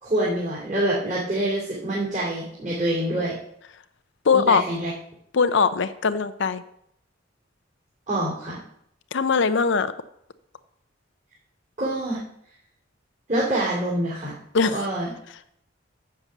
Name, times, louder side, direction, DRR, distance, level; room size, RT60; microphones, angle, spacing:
voice 1, 0.0-3.3 4.3-4.9 8.1-8.6 11.8-12.2 13.3-14.3 14.7-15.1, right 1 dB, 40° right, -6 dB, 2.9 m, -26 dB
voice 2, 4.3-4.6 5.3-6.6 9.1-9.9 14.5-14.8, left 5 dB, 65° left, 12 dB, 0.6 m, -21 dB
7.0 x 6.6 x 7.3 m, 0.72 s
head